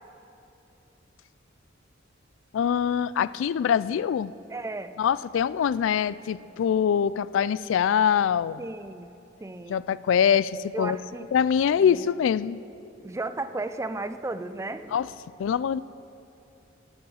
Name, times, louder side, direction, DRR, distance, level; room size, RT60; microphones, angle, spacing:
voice 1, 2.5-4.3 5.0-8.6 9.7-11.0 11.3-12.6 14.9-15.1 15.4-15.8, left 8 dB, 75° left, 19 dB, 0.3 m, -24 dB
voice 2, 4.5-4.9 8.6-9.1 9.4-9.8 10.7-11.3 11.8-12.1 13.0-15.0, right 2 dB, 15° right, 10 dB, 0.4 m, -34 dB
15.0 x 7.2 x 6.3 m, 2.8 s
head